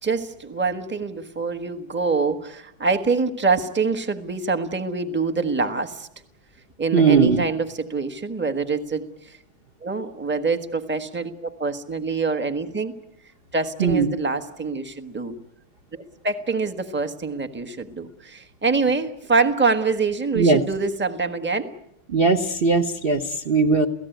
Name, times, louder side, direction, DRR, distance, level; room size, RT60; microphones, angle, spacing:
voice 1, 0.0-6.1 6.8-9.4 9.8-12.9 13.5-15.3 15.9-21.7, right 4 dB, 5° right, 7 dB, 1.0 m, -25 dB
voice 2, 6.9-7.4 13.8-14.1 20.3-20.6 22.1-23.9, right 4 dB, 40° right, 4 dB, 0.8 m, -19 dB
28.5 x 17.0 x 9.3 m, 0.81 s
omnidirectional pair, 2.4 m